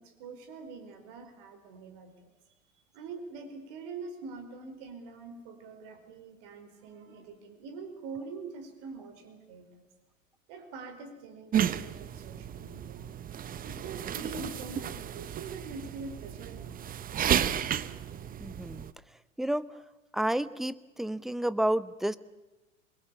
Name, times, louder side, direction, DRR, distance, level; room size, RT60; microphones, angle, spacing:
voice 1, 0.0-2.3 2.9-9.9 10.5-13.1 13.6-16.9, right 4 dB, 50° right, 8 dB, 5.1 m, -44 dB
sound 1, 11.5-18.9, right 9 dB, 20° right, 1.0 m, -33 dB
voice 2, 18.4-18.9 19.4-19.7 20.1-22.2, right 1 dB, ahead, 16 dB, 0.8 m, -30 dB
27.0 x 22.0 x 7.2 m, 1.1 s
figure-of-eight pair, 95°, 39 cm